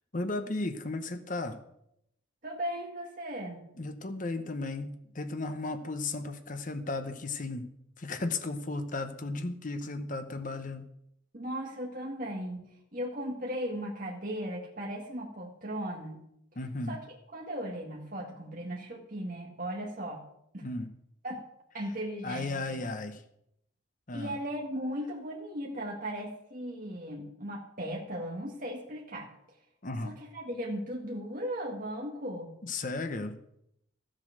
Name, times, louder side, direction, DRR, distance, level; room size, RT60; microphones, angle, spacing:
voice 1, 0.1-1.6 3.8-7.6 8.0-10.9 16.6-17.0 20.6-20.9 22.2-23.2 24.1-24.4 29.8-30.1 32.6-33.3, left 2 dB, 40° left, 8 dB, 1.0 m, -35 dB
voice 2, 2.4-3.6 11.3-12.7 12.9-16.2 16.9-20.2 20.5-20.7 21.2-21.4 21.7-22.8 24.1-29.3 30.0-32.5, equal, 45° right, -1 dB, 1.8 m, -37 dB
13.5 x 7.7 x 6.4 m, 0.77 s
head